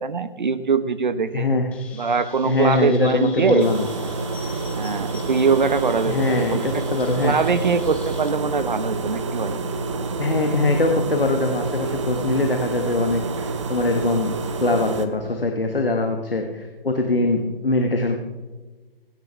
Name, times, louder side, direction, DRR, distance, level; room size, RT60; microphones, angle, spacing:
voice 1, 0.0-1.5 1.9-3.7 4.8-6.8 7.2-9.6, right 5 dB, 55° right, 13 dB, 1.2 m, -22 dB
voice 2, 1.3-1.7 2.4-3.8 6.1-7.4 10.2-14.3 14.6-18.2, left 2 dB, 70° left, 3 dB, 1.9 m, -22 dB
Chirp tweet, 1.7-8.3, left 6 dB, 5° left, 0.7 m, -44 dB
sound 1, 3.6-15.1, right 3 dB, 30° right, 1.0 m, -28 dB
24.5 x 10.5 x 3.6 m, 1.3 s
figure-of-eight pair, 140°, 29 cm